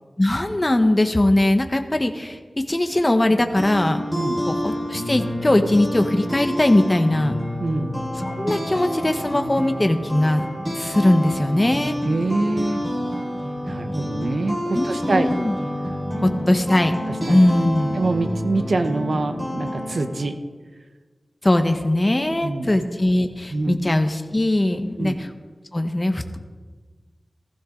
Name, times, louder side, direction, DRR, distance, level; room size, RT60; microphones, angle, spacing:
voice 1, 0.2-4.0 4.5-7.4 8.3-10.4 10.7-12.0 14.7-15.5 16.2-16.9 17.3-18.0 21.4-25.3 25.7-26.4, left 1 dB, 30° left, 6 dB, 1.2 m, -20 dB
sound 1, 3.3-20.2, equal, 20° right, 5.4 m, -28 dB
voice 2, 7.6-8.0 12.0-12.9 13.6-15.3 17.3-17.4 18.0-20.4 22.3-22.7 23.5-23.8 25.0-25.1, right 2 dB, 70° right, 7 dB, 1.0 m, -25 dB
16.0 x 15.0 x 3.9 m, 1.4 s
wide cardioid pair, 65°, 0 cm